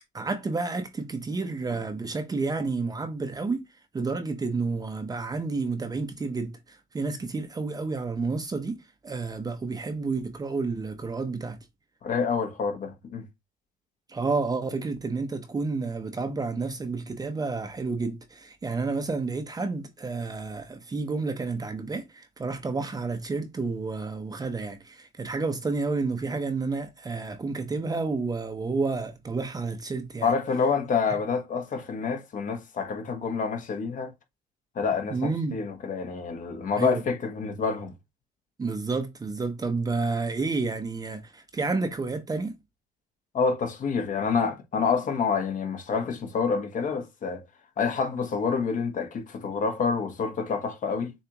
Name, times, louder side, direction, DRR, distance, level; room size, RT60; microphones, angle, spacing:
voice 1, 0.1-3.7 3.9-11.6 14.1-30.3 35.1-35.6 36.8-37.0 38.6-42.6, right 3 dB, 20° right, 0.7 m, -30 dB
voice 2, 12.0-13.2 30.2-34.1 34.7-37.9 43.3-47.4 47.8-51.1, left 5 dB, 45° left, 1.1 m, -27 dB
6.9 x 2.4 x 2.9 m
cardioid pair, 105°, 19 cm